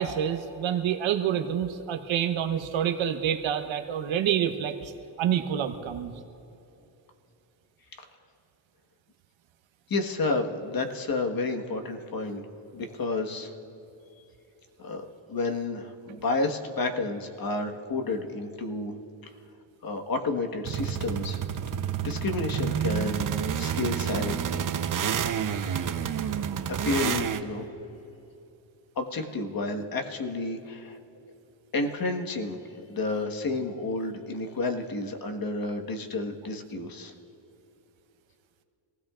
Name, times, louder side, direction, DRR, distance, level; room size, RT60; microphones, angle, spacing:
voice 1, 0.0-4.9 5.2-6.1, right 9 dB, 65° right, 7 dB, 1.1 m, -27 dB
voice 2, 9.9-12.4 12.7-13.5 14.8-18.9 19.8-21.4 22.0-24.6 26.7-27.7 28.9-31.0 31.7-37.1, left 3 dB, 45° left, 4 dB, 1.5 m, -31 dB
sound 1, 20.6-27.4, right 8 dB, 40° right, 0.8 m, -29 dB
26.5 x 16.5 x 2.5 m, 2.9 s
cardioid pair, 85°, 50 cm